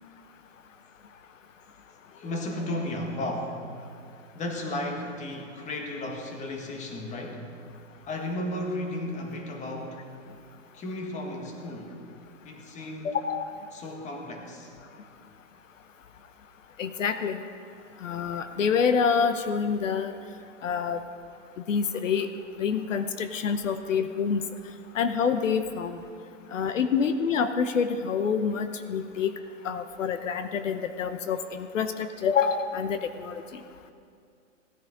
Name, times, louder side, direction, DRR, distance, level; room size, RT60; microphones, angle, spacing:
voice 1, 2.1-3.6 4.3-7.4 8.1-10.1 10.7-12.0 12.4-13.2 13.7-14.7 26.4-26.7, left 1 dB, 20° left, 3 dB, 1.6 m, -34 dB
voice 2, 13.0-13.5 16.8-17.4 18.0-20.1 20.6-21.0 21.7-22.3 22.6-24.4 24.9-26.0 26.5-29.3 29.6-33.6, left 6 dB, 80° left, 9 dB, 0.9 m, -27 dB
17.0 x 9.8 x 3.8 m, 2.3 s
hypercardioid pair, 125°, 37 cm